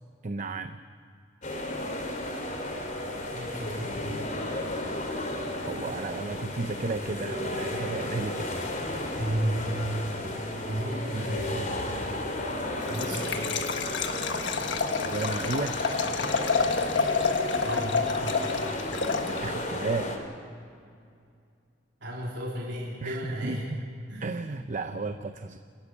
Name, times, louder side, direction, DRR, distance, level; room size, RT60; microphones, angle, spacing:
voice 1, 0.2-0.8 5.6-8.5 8.9-9.2 14.9-15.8 19.3-20.2 23.0-23.8 24.2-25.6, right 3 dB, 45° right, 9 dB, 0.7 m, -33 dB
sound 1, 1.4-20.2, left 1 dB, 45° left, 3.3 m, -33 dB
voice 2, 3.3-4.2 9.2-9.7 10.5-12.4 12.9-13.4 17.6-18.0 22.0-23.7 24.1-24.4, right 1 dB, 70° right, -5 dB, 3.8 m, -33 dB
Liquid, 12.8-19.7, left 4 dB, 75° left, 1.5 m, -29 dB
26.5 x 13.5 x 8.5 m, 2.4 s
head